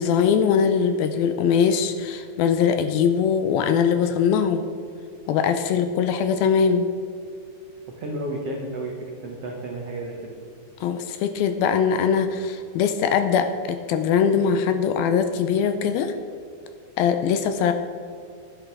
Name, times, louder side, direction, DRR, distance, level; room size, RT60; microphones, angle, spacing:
voice 1, 0.0-4.6 5.3-6.9 10.8-16.1 17.0-17.7, left 7 dB, 80° left, 8 dB, 2.3 m, -21 dB
voice 2, 8.0-8.9 9.2-10.3, right 1 dB, 75° right, 0 dB, 1.4 m, -32 dB
11.5 x 11.0 x 4.7 m, 2.3 s
omnidirectional pair, 4.6 m